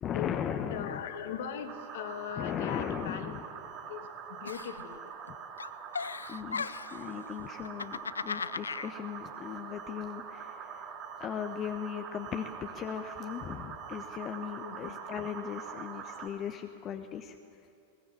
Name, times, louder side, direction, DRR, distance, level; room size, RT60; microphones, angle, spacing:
voice 1, 0.0-1.0 2.4-3.4 6.3-10.9 11.2-17.4, left 8 dB, 30° left, 6 dB, 1.1 m, -38 dB
voice 2, 0.7-3.3 3.9-5.0 6.3-6.4 14.6-15.0, left 8 dB, 55° left, 8 dB, 1.9 m, -39 dB
sound 1, 1.7-16.3, right 7 dB, 35° right, 2.8 m, -44 dB
Giggle, 4.4-5.3 5.6-7.0 7.6-8.9, left 5 dB, 75° left, 0.4 m, -37 dB
21.0 x 18.5 x 8.5 m, 2.8 s
figure-of-eight pair, 90°, 0 cm